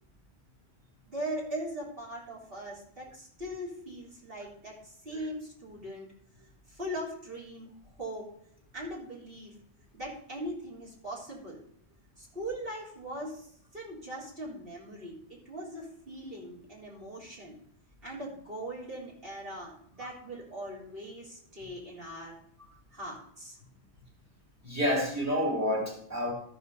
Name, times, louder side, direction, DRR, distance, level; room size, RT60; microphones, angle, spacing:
voice 1, 1.1-6.1 6.7-8.3 8.7-9.6 9.9-11.6 12.2-13.5 13.7-17.6 18.0-22.4 22.9-23.6, right 1 dB, 55° right, 4.0 m, -40 dB
voice 2, 24.6-26.3, equal, 15° right, 3.0 m, -29 dB
13.5 x 5.1 x 5.4 m
omnidirectional pair, 1.1 m